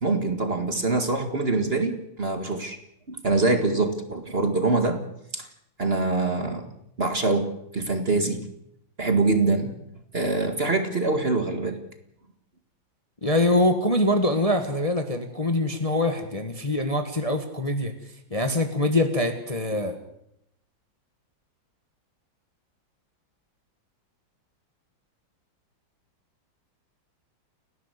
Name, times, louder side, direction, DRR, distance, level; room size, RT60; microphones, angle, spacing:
voice 1, 0.0-2.8 3.1-5.0 5.3-5.5 5.8-6.7 7.0-8.4 9.0-9.7 10.1-11.8, right 3 dB, 30° right, 6 dB, 2.0 m, -24 dB
voice 2, 13.2-17.9 18.3-20.0, left 1 dB, 20° left, 6 dB, 1.5 m, -24 dB
30.0 x 11.0 x 8.3 m, 0.76 s
omnidirectional pair, 2.1 m